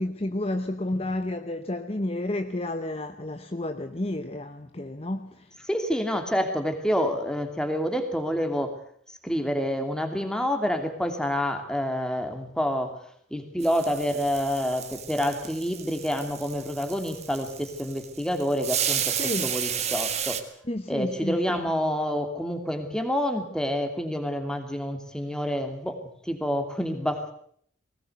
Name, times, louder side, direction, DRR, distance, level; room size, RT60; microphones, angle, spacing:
voice 1, 0.0-5.5 19.2-19.5 20.7-21.7, left 1 dB, 30° left, 0.9 m, -31 dB
voice 2, 5.7-8.7 9.1-13.0 13.3-20.4 20.9-26.0 26.2-27.3, equal, 5° left, 2.7 m, -28 dB
sound 1, 13.6-20.4, right 9 dB, 35° right, 1.6 m, -32 dB
20.0 x 18.5 x 8.1 m
head